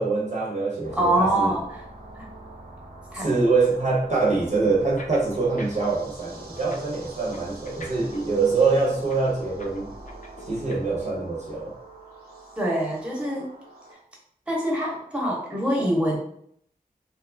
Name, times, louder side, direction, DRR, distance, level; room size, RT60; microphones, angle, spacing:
voice 1, 0.0-1.5 3.1-9.9 10.5-11.7, right 3 dB, 45° right, -4 dB, 0.7 m, -24 dB
sound 1, 0.8-13.9, right 2 dB, 80° right, 0.7 m, -44 dB
voice 2, 0.9-1.9 2.2-2.3 3.1-3.3 12.6-13.5 14.5-16.2, right 1 dB, 10° right, -3 dB, 0.9 m, -24 dB
sound 2, 4.8-6.0 6.2-11.1, left 2 dB, 55° left, 0.6 m, -44 dB
2.7 x 2.3 x 2.6 m, 0.66 s
wide cardioid pair, 65°, 16 cm